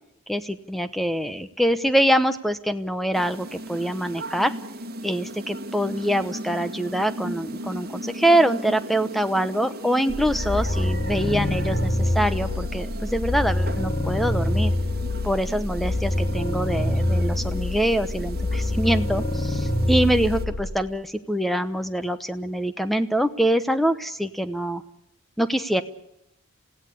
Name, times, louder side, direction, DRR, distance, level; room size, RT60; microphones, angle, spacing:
voice 1, 0.3-4.5 5.0-14.7 15.2-24.8 25.4-25.8, right 1 dB, ahead, 11 dB, 0.9 m, -24 dB
sound 1, 3.1-20.4, right 1 dB, 45° right, 2.1 m, -37 dB
sound 2, 10.1-20.7, left 1 dB, 30° left, 2.6 m, -25 dB
27.5 x 16.5 x 8.4 m, 0.80 s
head